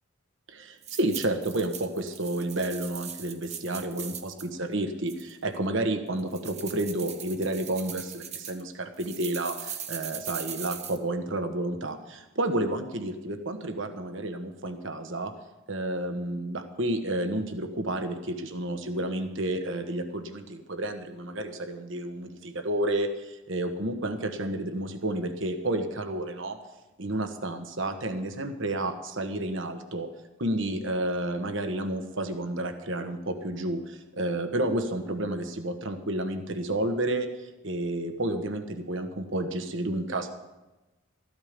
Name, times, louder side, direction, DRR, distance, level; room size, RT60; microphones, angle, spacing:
voice 1, 0.5-15.3 15.7-26.6 27.0-30.1 30.4-37.3 37.6-40.3, right 1 dB, 65° right, 7 dB, 1.3 m, -31 dB
sound 1, 0.8-4.5 5.1-5.6 6.2-8.6 9.0-11.0, right 8 dB, 30° right, 0.9 m, -40 dB
14.5 x 12.0 x 5.2 m, 1.0 s
head